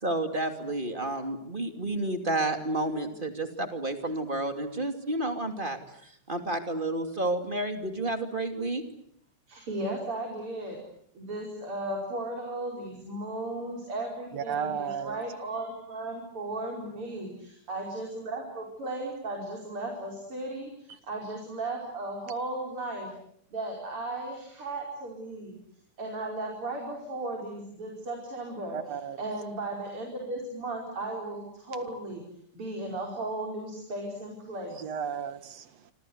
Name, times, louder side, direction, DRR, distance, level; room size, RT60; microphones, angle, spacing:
voice 1, 0.0-5.8 6.3-8.8, right 2 dB, 15° right, 7 dB, 2.5 m, -30 dB
voice 2, 9.5-10.8 11.1-23.1 23.5-25.6 26.0-28.8 29.2-32.2 32.5-34.9, right 2 dB, 40° right, 1 dB, 5.8 m, -36 dB
voice 3, 14.3-15.2 28.7-29.2 34.8-35.9, right 7 dB, 55° right, 12 dB, 2.7 m, -34 dB
26.5 x 26.5 x 8.1 m, 0.69 s
omnidirectional pair, 3.6 m